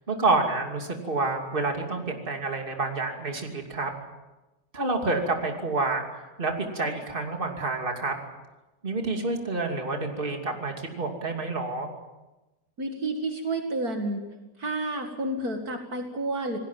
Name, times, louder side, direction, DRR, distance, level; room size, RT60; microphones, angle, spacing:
voice 1, 0.1-3.9 4.7-8.1 8.8-11.9, right 3 dB, 30° right, 3 dB, 2.9 m, -28 dB
voice 2, 12.8-14.3 14.6-16.6, right 2 dB, 55° right, 3 dB, 2.6 m, -30 dB
28.0 x 19.5 x 7.5 m, 1.1 s
omnidirectional pair, 1.9 m